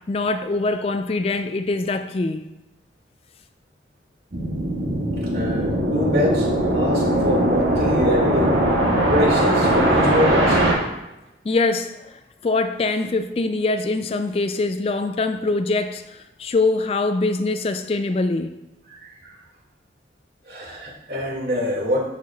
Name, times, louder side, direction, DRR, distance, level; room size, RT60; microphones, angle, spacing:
voice 1, 0.0-2.5 11.4-18.6, left 3 dB, 35° left, 9 dB, 0.3 m, -23 dB
sound 1, 4.3-10.7, right 1 dB, 85° right, 1.7 m, -20 dB
voice 2, 5.3-8.6 9.1-10.6 18.9-19.3 20.5-22.0, left 1 dB, 65° right, -3 dB, 2.1 m, -25 dB
12.0 x 5.0 x 2.3 m, 0.97 s
head